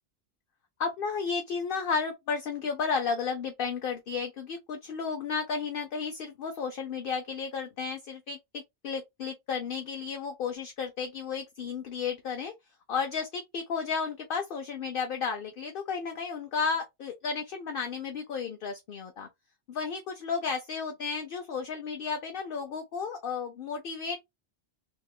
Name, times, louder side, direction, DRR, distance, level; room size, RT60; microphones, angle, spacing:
voice 1, 0.8-12.5 12.9-19.3 19.7-24.2, left 5 dB, 60° left, 0.7 m, -33 dB
3.1 x 2.8 x 2.2 m
omnidirectional pair, 1.1 m